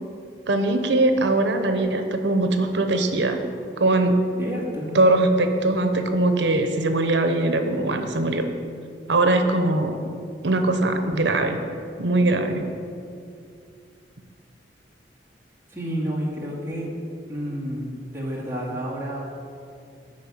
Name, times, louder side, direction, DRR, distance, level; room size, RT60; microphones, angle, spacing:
voice 1, 0.5-3.4 3.8-4.2 4.9-8.5 9.1-10.0 10.4-11.6 12.0-12.7, right 2 dB, 75° right, 6 dB, 0.9 m, -21 dB
voice 2, 4.4-5.0 15.7-16.9 17.3-19.2, equal, 15° right, -5 dB, 2.1 m, -30 dB
9.0 x 5.5 x 7.3 m, 2.4 s
head